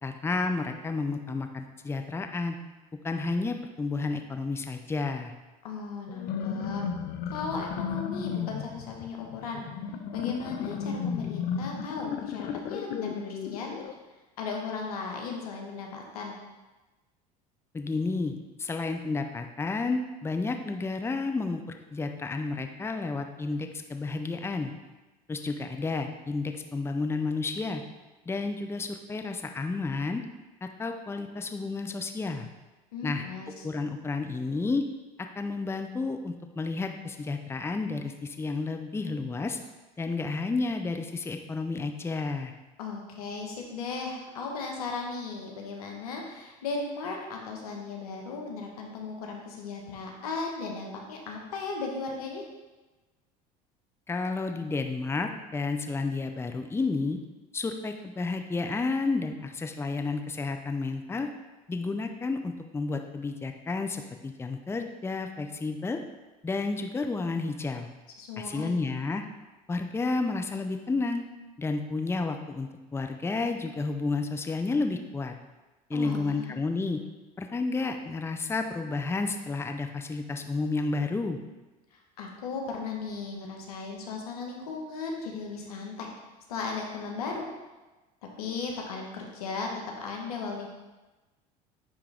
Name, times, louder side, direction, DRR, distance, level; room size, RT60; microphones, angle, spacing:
voice 1, 0.0-2.6 3.0-5.3 17.7-21.6 21.9-24.7 25.3-27.8 28.3-30.2 30.6-32.5 33.0-33.2 33.6-34.8 35.4-39.6 40.0-42.5 54.1-57.2 57.5-61.3 61.7-66.0 66.4-67.9 68.4-69.2 69.7-71.2 71.6-75.3 75.9-77.0 77.4-81.4, left 3 dB, 15° left, 6 dB, 0.6 m, -31 dB
voice 2, 5.6-6.8 7.3-9.6 10.1-14.0 14.4-16.4 32.9-33.7 42.8-52.4 68.2-68.8 75.9-76.5 81.9-86.1 86.5-87.5 88.4-90.7, left 4 dB, 90° left, 0 dB, 1.2 m, -36 dB
sound 1, 6.1-13.9, left 7 dB, 55° left, 0.6 m, -34 dB
9.6 x 3.5 x 3.5 m, 1.1 s
hypercardioid pair, 85°, 19 cm